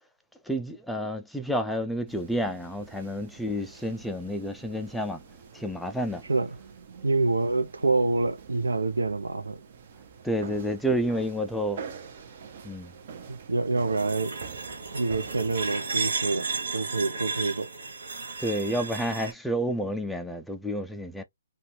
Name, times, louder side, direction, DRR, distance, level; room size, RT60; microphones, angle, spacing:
voice 1, 0.5-5.2 5.5-6.2 10.2-11.8 12.6-12.9 18.4-21.2, equal, ahead, 0.3 m, -30 dB
sound 1, 2.1-15.7, right 6 dB, 45° right, 0.7 m, -46 dB
voice 2, 7.0-9.6 13.3-14.4 14.9-16.5 16.7-17.7, right 3 dB, 80° right, 0.6 m, -26 dB
sound 2, 14.0-19.3, right 4 dB, 65° right, 1.0 m, -33 dB
2.6 x 2.3 x 3.0 m
figure-of-eight pair, 140°, 0 cm